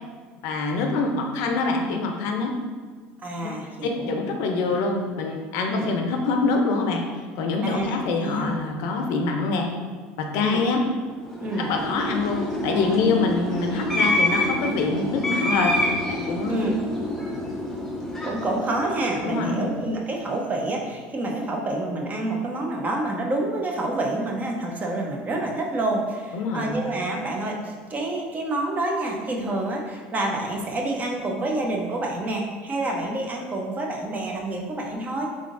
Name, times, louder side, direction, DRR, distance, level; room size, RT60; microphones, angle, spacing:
voice 1, 0.4-2.5 3.4-3.5 3.8-7.0 7.4-9.7 10.2-10.8 11.6-15.7 16.1-16.7 19.2-19.7 26.3-26.8, left 3 dB, 70° left, 3 dB, 0.6 m, -25 dB
voice 2, 3.2-4.2 4.6-4.8 5.7-5.9 7.6-7.9 8.2-8.5 10.4-10.6 11.4-11.7 16.4-16.8 18.2-35.3, right 2 dB, 30° right, 0 dB, 0.7 m, -28 dB
sound 1, 11.2-19.7, left 1 dB, 5° left, 0.8 m, -27 dB
3.7 x 3.5 x 2.5 m, 1.5 s
supercardioid pair, 95°, 5 cm